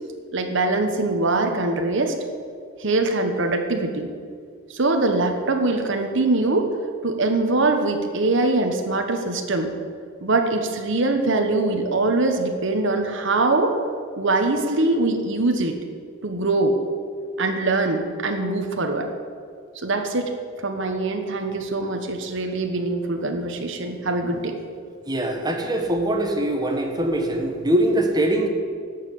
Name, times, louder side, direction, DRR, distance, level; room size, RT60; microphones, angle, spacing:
voice 1, 0.3-2.1 2.8-4.1 4.7-6.7 7.0-9.7 10.2-13.7 14.2-15.8 16.2-16.8 17.4-19.1 19.8-20.3 20.6-24.6, right 2 dB, 65° right, 5 dB, 1.2 m, -22 dB
voice 2, 25.1-28.5, right 1 dB, 20° right, 3 dB, 1.4 m, -22 dB
12.5 x 5.8 x 8.5 m, 2.1 s
head